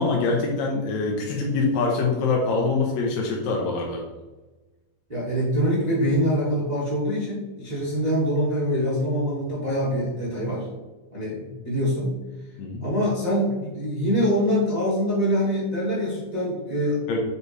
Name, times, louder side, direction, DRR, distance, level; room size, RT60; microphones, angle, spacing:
voice 1, 0.0-4.0 12.6-12.8 17.1-17.2, left 3 dB, 70° left, -1 dB, 1.9 m, -24 dB
voice 2, 5.1-10.6 11.1-12.1 12.8-17.0, equal, 20° right, -8 dB, 1.1 m, -24 dB
6.6 x 4.9 x 3.2 m, 1.2 s
omnidirectional pair, 3.7 m